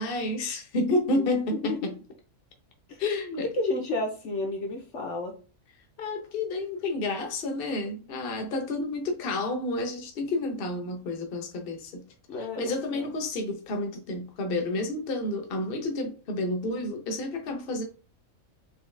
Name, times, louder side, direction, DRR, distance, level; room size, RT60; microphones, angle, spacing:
voice 1, 0.0-1.9 3.0-3.5 6.0-12.0 12.6-17.8, left 2 dB, 45° left, 1.1 m, -30 dB
voice 2, 3.5-5.3 8.0-8.1 12.3-13.1, left 2 dB, 60° left, 1.2 m, -31 dB
4.8 x 3.0 x 3.3 m
omnidirectional pair, 1.4 m